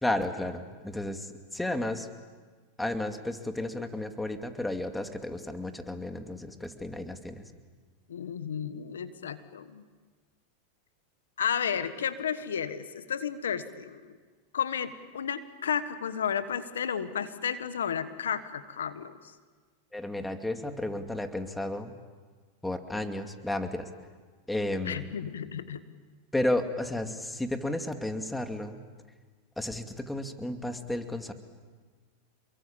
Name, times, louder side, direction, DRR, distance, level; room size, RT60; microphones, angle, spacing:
voice 1, 0.0-2.1 2.8-7.4 19.9-21.9 22.6-23.9 24.5-25.1 26.3-28.8 29.6-31.3, left 1 dB, 5° left, 6 dB, 2.4 m, -32 dB
voice 2, 8.1-9.8 11.4-14.0 14.5-19.3 24.8-25.8, left 7 dB, 90° left, 12 dB, 1.4 m, -32 dB
28.0 x 23.0 x 8.8 m, 1.4 s
hypercardioid pair, 110°, 0 cm